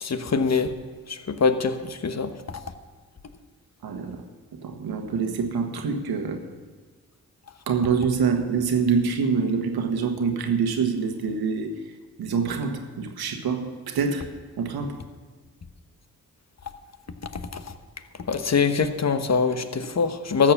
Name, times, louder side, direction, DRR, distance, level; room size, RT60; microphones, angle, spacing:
voice 1, 0.0-0.7 1.3-1.8 2.0-2.3 18.3-20.5, left 5 dB, 45° left, 9 dB, 1.2 m, -23 dB
voice 2, 3.8-4.2 4.5-6.4 7.7-11.8 12.2-14.3 14.6-15.0, right 5 dB, 80° right, 5 dB, 1.4 m, -25 dB
13.5 x 7.4 x 7.2 m, 1.5 s
supercardioid pair, 40°, 37 cm